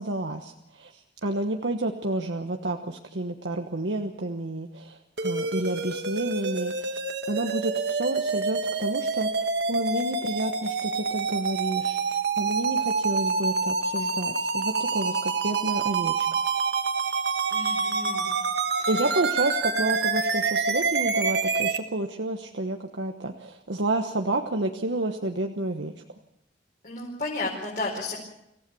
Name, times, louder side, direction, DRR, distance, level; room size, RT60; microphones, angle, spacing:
voice 1, 0.0-7.0 7.2-16.3 18.9-25.9, right 2 dB, 85° right, 4 dB, 1.2 m, -30 dB
sound 1, 5.2-21.8, right 4 dB, 65° right, 1.4 m, -27 dB
voice 2, 17.5-18.4 18.8-18.9 26.8-28.2, left 2 dB, 50° left, -4 dB, 4.8 m, -33 dB
26.0 x 15.5 x 7.0 m, 0.82 s
head